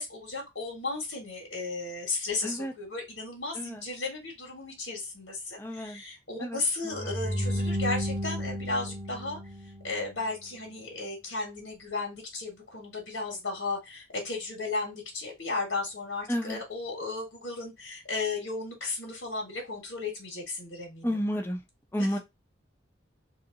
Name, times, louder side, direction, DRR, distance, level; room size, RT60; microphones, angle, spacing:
voice 1, 0.0-9.4 9.8-21.2 22.0-22.1, left 3 dB, 80° left, 1.5 m, -34 dB
voice 2, 5.6-6.0 6.4-6.6 6.8-7.1 7.4-7.6 16.3-16.6 21.0-21.6 21.9-22.2, equal, 10° left, 0.5 m, -31 dB
sound 1, 6.9-10.1, equal, 35° right, 0.9 m, -32 dB
3.2 x 2.9 x 3.7 m
head